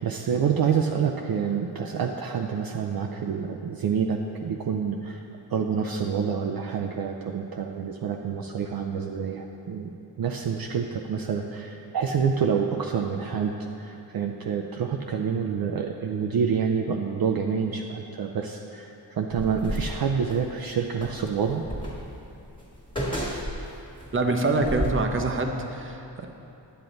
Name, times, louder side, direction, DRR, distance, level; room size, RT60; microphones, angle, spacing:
voice 1, 0.0-21.6, right 6 dB, 55° right, 2 dB, 0.5 m, -27 dB
sound 1, 19.3-20.5 21.0-24.1 24.6-24.9, equal, 10° left, 1.7 m, -32 dB
voice 2, 24.1-26.3, right 2 dB, 30° right, 3 dB, 0.8 m, -25 dB
10.5 x 7.8 x 3.9 m, 2.8 s
wide cardioid pair, 115°, 43 cm